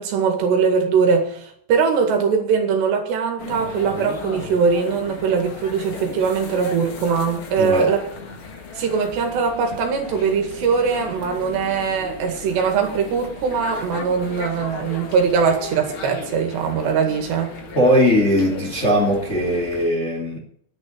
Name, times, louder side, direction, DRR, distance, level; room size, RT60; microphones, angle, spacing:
voice 1, 0.0-8.0 8.8-17.6, right 5 dB, 80° right, 4.1 m, -21 dB
sound 1, 3.4-19.9, left 4 dB, 50° left, 1.6 m, -36 dB
voice 2, 7.6-7.9 17.7-20.4, equal, 20° left, 2.3 m, -19 dB
10.5 x 9.9 x 8.7 m
omnidirectional pair, 4.9 m